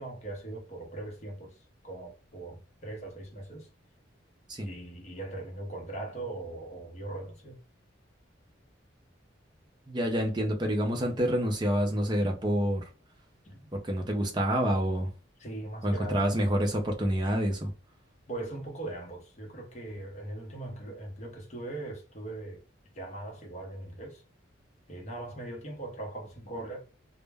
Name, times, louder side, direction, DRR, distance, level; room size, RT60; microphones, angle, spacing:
voice 1, 0.0-3.7 4.6-7.6 13.4-13.7 15.4-16.4 18.3-22.6 22.9-24.2 24.9-26.8, right 2 dB, 35° left, 0.7 m, -40 dB
voice 2, 9.9-12.8 13.8-15.1 15.8-17.7, equal, 20° right, 0.5 m, -27 dB
2.1 x 2.0 x 3.3 m
head